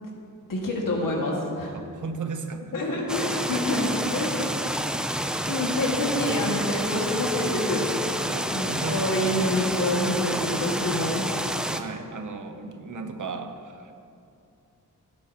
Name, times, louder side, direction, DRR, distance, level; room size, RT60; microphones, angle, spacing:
voice 1, 0.5-1.7 2.7-4.5 5.0-5.1 5.4-7.9 8.5-11.3 12.6-12.7, left 1 dB, 90° left, -2 dB, 2.0 m, -27 dB
voice 2, 1.7-3.8 8.3-9.2 11.6-13.9, right 4 dB, 65° right, 6 dB, 0.9 m, -36 dB
sound 1, 3.1-11.8, equal, ahead, 0.5 m, -29 dB
16.5 x 10.5 x 3.0 m, 2.6 s
wide cardioid pair, 130°, 32 cm